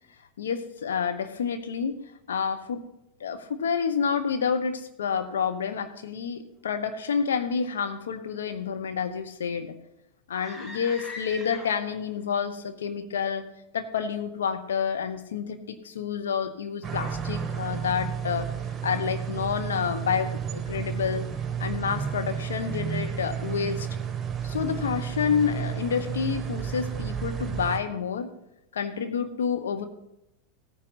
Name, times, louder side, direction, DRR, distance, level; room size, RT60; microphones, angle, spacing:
voice 1, 0.4-2.0 2.3-2.8 3.2-9.7 10.3-13.5 13.7-18.5 18.8-21.2 21.6-23.9 24.4-28.3 28.7-29.8, left 6 dB, 70° left, 8 dB, 1.0 m, -29 dB
sound 1, 10.3-12.1, left 1 dB, 25° left, 2.2 m, -41 dB
sound 2, 16.8-27.8, right 8 dB, 20° right, 1.6 m, -32 dB
16.5 x 9.7 x 4.0 m, 0.87 s
figure-of-eight pair, 90°, 0 cm